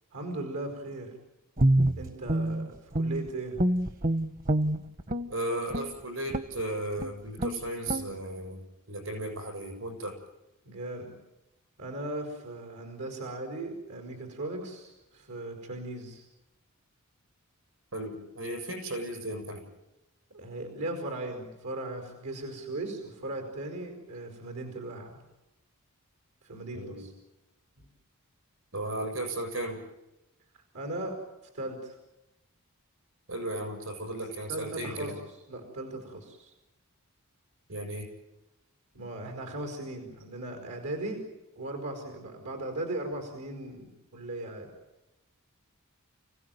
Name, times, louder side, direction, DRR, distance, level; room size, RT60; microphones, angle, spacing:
voice 1, 0.1-1.1 2.0-3.6 10.6-11.1 11.8-16.2 20.3-25.2 26.4-27.1 30.7-31.2 31.5-31.9 34.1-34.2 34.5-35.1 35.5-36.5 38.9-41.2 41.5-44.7, right 2 dB, 90° right, 4 dB, 5.1 m, -38 dB
Guitar, 1.6-3.3 3.6-5.3 5.7-5.9 6.3-6.6 7.0-7.1 7.4-7.6 7.9-8.1, right 1 dB, 40° right, 1.0 m, -26 dB
voice 2, 5.3-10.1 17.9-19.6 26.7-27.1 28.7-29.8 33.3-35.2 37.7-38.1, right 1 dB, 65° right, 5 dB, 7.3 m, -35 dB
29.5 x 16.5 x 9.2 m, 0.97 s
head